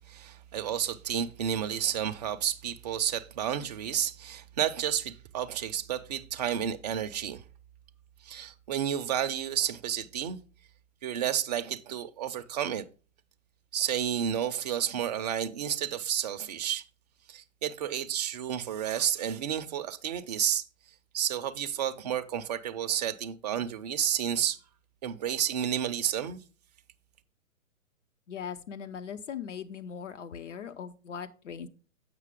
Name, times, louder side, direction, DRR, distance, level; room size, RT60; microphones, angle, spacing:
voice 1, 0.1-7.4 8.2-10.4 11.0-12.8 13.7-16.8 17.3-20.6 21.1-24.6 25.0-26.4, right 9 dB, 30° right, 0.4 m, -31 dB
voice 2, 28.3-31.7, left 7 dB, 60° left, 0.8 m, -39 dB
7.4 x 6.0 x 3.6 m
figure-of-eight pair, 120°, 41 cm